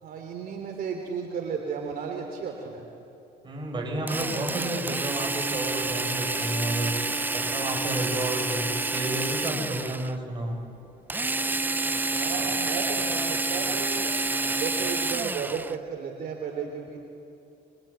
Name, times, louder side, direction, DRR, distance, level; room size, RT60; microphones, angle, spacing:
voice 1, 0.0-2.9 12.1-14.1 14.5-17.0, right 6 dB, 60° right, 2 dB, 3.2 m, -34 dB
voice 2, 3.4-6.9 7.3-10.6, right 1 dB, 30° right, 1 dB, 7.4 m, -31 dB
Drill, 4.1-10.1 11.1-15.8, right 3 dB, 10° right, 0.6 m, -29 dB
26.5 x 24.0 x 9.0 m, 2.6 s
cardioid pair, 110°, 17 cm